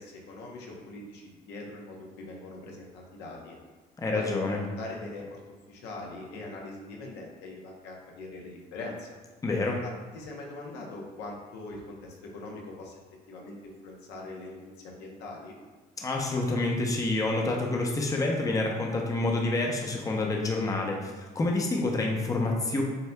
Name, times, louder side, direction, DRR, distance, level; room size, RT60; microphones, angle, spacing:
voice 1, 0.0-3.6 4.1-4.5 4.8-5.4 5.7-9.2 9.8-12.9 13.3-14.6 14.8-15.5, left 2 dB, 85° left, -1 dB, 0.8 m, -42 dB
voice 2, 4.0-4.6 9.4-9.8 16.0-22.8, left 2 dB, 20° left, 0 dB, 0.6 m, -28 dB
7.8 x 2.7 x 2.2 m, 1.3 s
cardioid pair, 110°, 17 cm